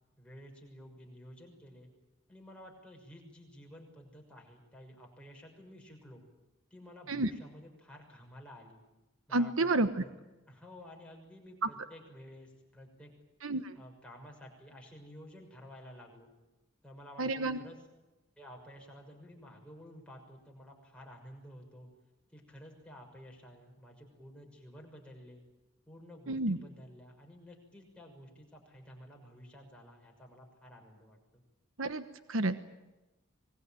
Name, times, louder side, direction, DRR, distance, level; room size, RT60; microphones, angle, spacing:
voice 1, 0.2-1.9 2.3-6.2 6.7-8.8 9.3-10.1 10.4-13.1 13.7-16.3 16.8-17.8 18.4-21.9 22.3-25.4 25.9-31.4, equal, 5° left, 0 dB, 6.3 m, -52 dB
voice 2, 9.3-10.0 13.4-13.7 17.2-17.6 26.3-26.6 31.8-32.6, right 2 dB, 80° right, 11 dB, 1.2 m, -30 dB
25.0 x 21.0 x 9.1 m, 1.0 s
head